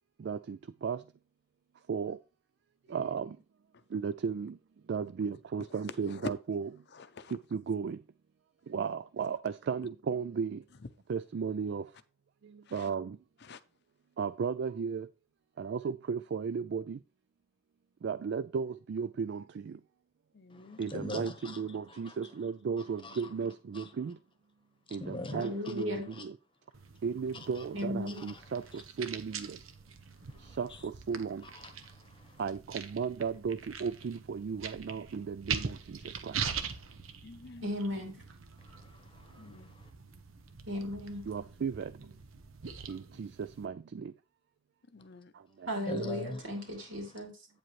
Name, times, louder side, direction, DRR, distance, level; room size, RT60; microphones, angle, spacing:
voice 1, 0.2-1.0 1.9-2.2 2.9-3.3 3.9-4.5 4.9-6.6 7.5-8.0 8.7-10.6 11.1-11.8 12.7-13.2 14.2-15.1 15.6-17.0 18.0-19.7 20.8-24.1 24.9-26.3 27.0-28.6 29.0-29.6 30.6-31.4 32.4-36.0 36.2-36.4 41.3-41.9 42.9-44.1, right 6 dB, 60° right, 0.3 m, -35 dB
voice 2, 5.7-6.3 6.9-7.4 10.8-10.9 12.7-12.9 13.4-13.6 20.3-20.9 37.2-37.7 39.4-39.8 44.9-45.3, left 4 dB, 55° left, 0.6 m, -45 dB
voice 3, 20.5-21.6 21.9-22.1 23.0-23.2 23.7-23.9 25.0-25.5 30.4-30.6 31.5-32.0 38.6-39.9 45.9-46.4, left 2 dB, 25° left, 1.0 m, -42 dB
voice 4, 25.3-26.1 27.7-28.3 37.6-38.2 40.7-41.2 45.7-47.5, equal, 75° right, 3.1 m, -36 dB
sound 1, 26.7-43.7, right 6 dB, 90° right, 0.9 m, -43 dB
8.8 x 7.6 x 3.1 m
head